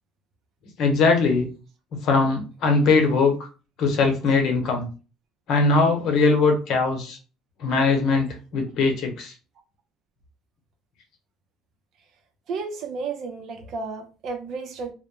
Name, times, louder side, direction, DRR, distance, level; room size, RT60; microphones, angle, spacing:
voice 1, 0.8-1.5 1.9-3.3 3.8-4.9 5.5-7.2 7.6-9.3, left 4 dB, 60° left, 0.8 m, -20 dB
voice 2, 12.5-14.9, right 4 dB, 60° right, 0.6 m, -32 dB
2.2 x 2.1 x 2.9 m
cardioid pair, 115°, 0 cm